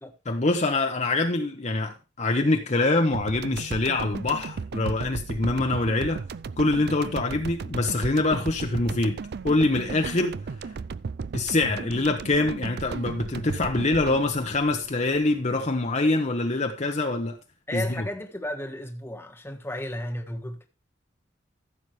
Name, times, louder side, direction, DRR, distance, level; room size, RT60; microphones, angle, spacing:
voice 1, 0.3-6.2 6.6-9.2 9.4-10.4 11.3-17.4 17.7-18.1, left 2 dB, 40° left, 1.0 m, -25 dB
sound 1, 3.1-15.6, right 4 dB, 60° right, 0.4 m, -35 dB
voice 2, 17.7-20.7, left 1 dB, 15° left, 1.4 m, -34 dB
15.0 x 7.1 x 3.2 m
head